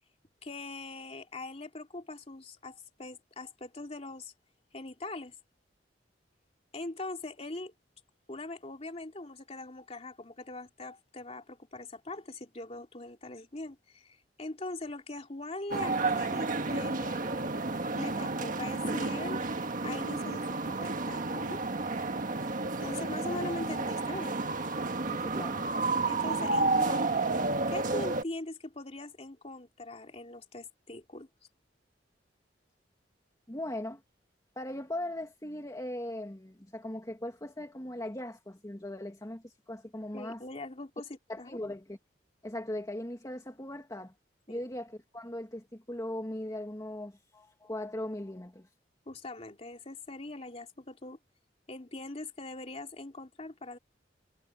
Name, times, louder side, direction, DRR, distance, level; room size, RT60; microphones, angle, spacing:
voice 1, 0.4-4.3 4.7-5.3 6.7-7.7 8.3-17.5 17.9-19.4 19.8-21.6 22.8-24.4 26.1-27.1 27.7-31.3 40.1-41.1 41.4-41.6 44.5-44.6 49.1-51.2 51.7-53.8, left 2 dB, 35° left, 2.7 m, -41 dB
sound 1, 15.7-28.2, right 3 dB, 50° right, 1.6 m, -31 dB
voice 2, 25.1-25.7 33.5-34.0 34.6-40.4 41.3-42.0 42.4-44.1 44.5-48.7, left 1 dB, 20° left, 2.0 m, -39 dB
head